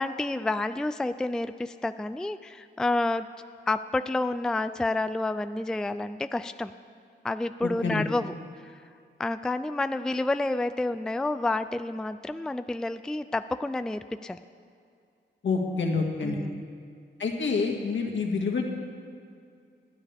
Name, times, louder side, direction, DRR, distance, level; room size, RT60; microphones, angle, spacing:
voice 1, 0.0-3.3 3.7-6.7 7.2-8.3 9.2-14.4 16.2-16.6, left 2 dB, 5° left, 11 dB, 0.3 m, -29 dB
voice 2, 7.6-8.0 15.4-16.4 17.2-18.6, left 4 dB, 75° left, 1 dB, 2.0 m, -27 dB
26.5 x 9.8 x 3.5 m, 2.4 s
cardioid pair, 90°, 20 cm